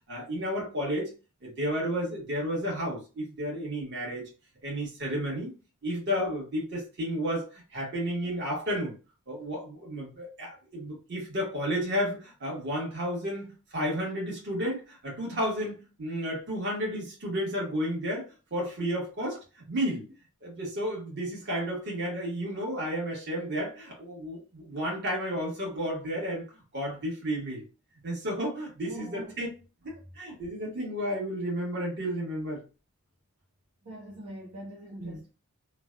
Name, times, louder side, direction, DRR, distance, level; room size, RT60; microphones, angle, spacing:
voice 1, 0.1-1.1 1.4-4.3 4.6-5.5 5.8-8.9 9.3-18.2 18.5-20.0 20.4-26.4 26.7-27.7 28.0-29.5 29.8-32.6 35.0-35.2, equal, 50° right, 1.4 m, -32 dB
voice 2, 28.8-29.4 33.8-35.3, equal, 90° right, 1.0 m, -43 dB
3.2 x 2.2 x 2.3 m
head